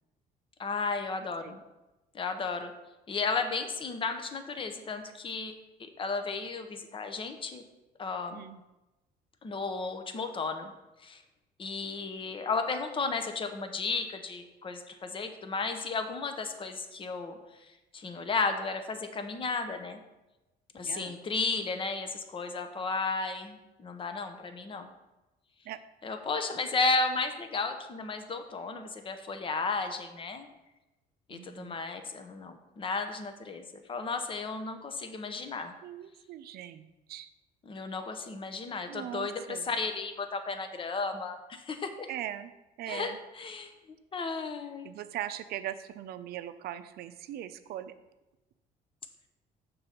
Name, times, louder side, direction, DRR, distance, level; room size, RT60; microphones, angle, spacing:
voice 1, 0.6-1.6 2.1-2.7 3.1-5.5 5.8-7.6 8.0-8.4 9.4-10.7 11.0-11.2 11.6-20.0 20.7-24.9 26.0-30.5 31.3-35.7 37.7-42.1 42.9-43.7 44.1-44.9, left 4 dB, 30° left, 7 dB, 0.8 m, -34 dB
voice 2, 8.3-8.6 20.8-21.1 25.6-25.8 31.3-31.8 35.8-37.3 38.9-39.7 42.1-42.5 42.8-43.2 44.8-47.9, right 12 dB, 70° right, 11 dB, 0.5 m, -40 dB
6.8 x 3.9 x 5.7 m, 1.0 s
cardioid pair, 110°, 17 cm